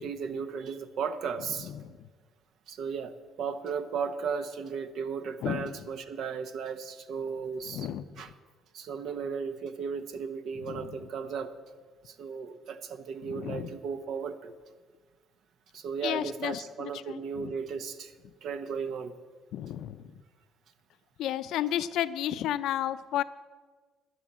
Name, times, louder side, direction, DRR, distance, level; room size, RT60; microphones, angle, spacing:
voice 1, 0.0-1.7 2.7-7.9 8.2-8.3 8.7-11.5 12.0-14.5 15.7-18.1 18.4-19.1, right 6 dB, 55° right, 11 dB, 0.9 m, -35 dB
voice 2, 1.6-2.1 5.4-5.7 7.7-8.0 10.6-11.0 13.2-13.7 16.0-17.5 19.5-20.1 21.2-23.2, left 11 dB, 70° left, 13 dB, 0.6 m, -33 dB
11.0 x 10.5 x 7.4 m, 1.5 s
cardioid pair, 150°, 0 cm